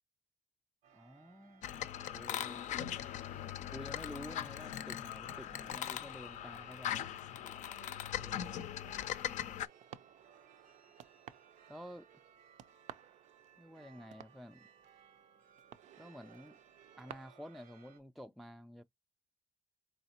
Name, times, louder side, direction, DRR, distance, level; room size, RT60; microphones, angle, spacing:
sound 1, 0.8-18.0, right 7 dB, 85° right, 0.9 m, -64 dB
voice 1, 0.9-1.7 2.1-3.0 3.7-7.1 8.2-8.6 11.7-12.1 13.6-14.6 16.0-16.6 17.0-18.8, equal, ahead, 0.3 m, -50 dB
sound 2, 1.6-9.7, left 11 dB, 70° left, 0.4 m, -40 dB
sound 3, 3.5-17.1, right 10 dB, 70° right, 0.4 m, -58 dB
4.0 x 3.1 x 2.8 m
cardioid pair, 85°, 13 cm